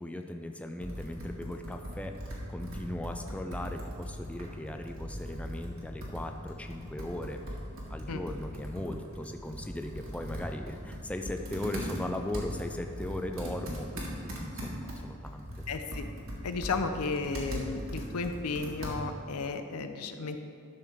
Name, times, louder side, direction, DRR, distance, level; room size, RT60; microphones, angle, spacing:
voice 1, 0.0-7.4 7.9-15.5, left 1 dB, 5° left, 5 dB, 0.3 m, -38 dB
Computer keyboard, 0.8-19.3, equal, 65° right, 1.8 m, -40 dB
voice 2, 15.7-16.1 16.4-20.4, left 4 dB, 85° left, 7 dB, 0.6 m, -33 dB
11.5 x 6.3 x 3.6 m, 2.5 s
head